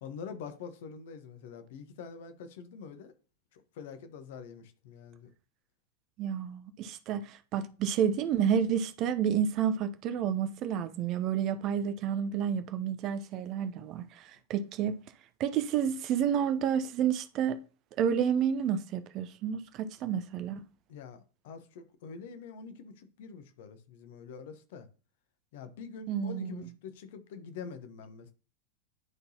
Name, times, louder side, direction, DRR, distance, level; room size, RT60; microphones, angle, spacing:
voice 1, 0.0-3.1 3.5-5.3 20.9-24.9 25.5-28.3, left 6 dB, 55° left, 1.0 m, -45 dB
voice 2, 6.2-15.0 15.4-17.6 18.0-20.6 26.1-26.7, right 8 dB, 35° right, 0.6 m, -30 dB
10.5 x 3.9 x 2.8 m
figure-of-eight pair, 90°, 0 cm